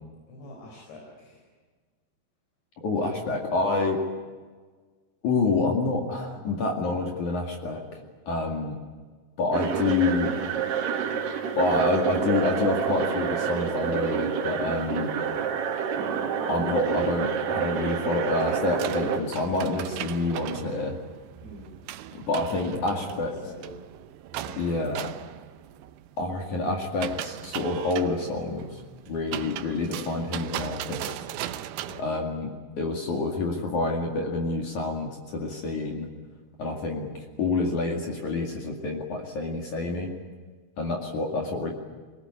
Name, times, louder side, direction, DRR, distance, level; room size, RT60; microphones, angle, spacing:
voice 1, 0.3-1.4 21.4-21.7 22.3-23.8 24.3-25.1 31.8-32.1, equal, 70° left, -1 dB, 6.6 m, -44 dB
voice 2, 2.8-4.0 5.2-8.0 8.3-8.8 9.4-10.4 11.6-15.1 16.5-21.0 22.3-23.3 24.6-25.1 26.2-28.8 29.1-31.1 32.0-32.5 32.8-36.1 36.6-37.1 37.4-40.1 40.8-41.7, left 3 dB, 50° left, 1 dB, 3.1 m, -27 dB
sound 1, 9.5-19.2, right 7 dB, 65° right, 3.9 m, -28 dB
sound 2, 18.4-32.0, right 12 dB, 80° right, 2.2 m, -38 dB
22.5 x 19.5 x 9.8 m, 1.4 s
omnidirectional pair, 5.3 m